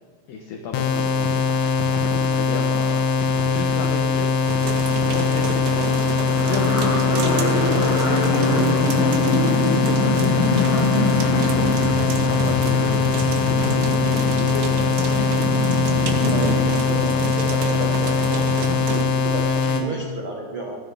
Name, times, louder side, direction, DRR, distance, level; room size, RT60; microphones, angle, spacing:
voice 1, 0.3-1.8 2.2-4.3 5.1-10.7 11.3-11.8 12.3-15.3, left 5 dB, 65° left, 2 dB, 2.5 m, -33 dB
sound 1, 0.7-19.8, left 4 dB, 90° left, 3.7 m, -21 dB
sound 2, 3.7-18.9, left 1 dB, 35° left, 4.8 m, -26 dB
sound 3, 4.4-19.0, right 5 dB, 90° right, 3.6 m, -32 dB
voice 2, 16.3-18.5 18.8-20.8, right 2 dB, 55° right, -1 dB, 1.5 m, -31 dB
26.5 x 10.5 x 3.6 m, 1.6 s
omnidirectional pair, 5.0 m